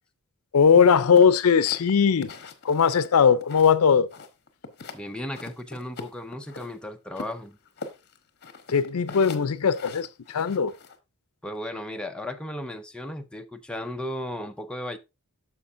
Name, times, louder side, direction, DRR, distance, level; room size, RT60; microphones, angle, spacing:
voice 1, 0.5-2.3 2.6-4.1 8.7-10.7, left 6 dB, 75° left, 0.5 m, -19 dB
sound 1, 1.1-3.8 4.1-5.0 5.3-6.7 7.1-11.0, left 4 dB, 50° left, 1.1 m, -41 dB
voice 2, 4.9-7.6 11.4-15.0, left 1 dB, 5° left, 0.5 m, -35 dB
9.8 x 6.7 x 2.5 m
head